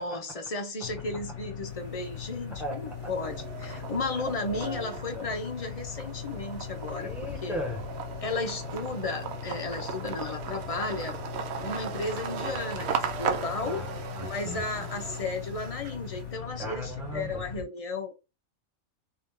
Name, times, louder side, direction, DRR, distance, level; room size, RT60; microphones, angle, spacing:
voice 1, 0.0-7.1 7.4-7.5 8.2-11.1 11.6-13.8 14.2-18.2, left 3 dB, 35° left, 0.6 m, -34 dB
sound 1, 0.8-17.6, left 9 dB, 65° left, 1.1 m, -40 dB
sound 2, 1.7-2.3 2.7-16.2, right 7 dB, 60° right, 0.8 m, -38 dB
voice 2, 2.5-3.1 4.5-5.3 7.0-7.8 13.6-14.9 16.6-17.4, equal, ahead, 1.4 m, -38 dB
3.8 x 2.8 x 3.7 m
omnidirectional pair, 1.4 m